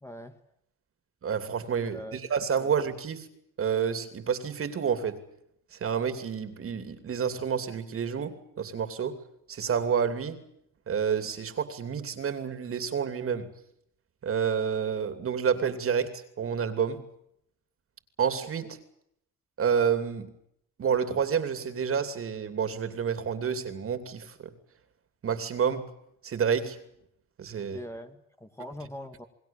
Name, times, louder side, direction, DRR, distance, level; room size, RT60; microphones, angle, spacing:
voice 1, 0.0-0.4 1.8-2.2 2.6-2.7 27.6-29.3, left 1 dB, 10° left, 7 dB, 1.5 m, -42 dB
voice 2, 1.2-3.3 3.6-5.2 5.7-9.2 9.5-10.4 10.9-13.5 14.2-17.0 18.2-18.8 19.6-20.3 20.8-24.5 25.2-25.8 26.2-26.8 27.4-27.8, right 7 dB, 45° right, 10 dB, 2.9 m, -29 dB
28.5 x 21.0 x 7.3 m, 0.75 s
cardioid pair, 145°, 31 cm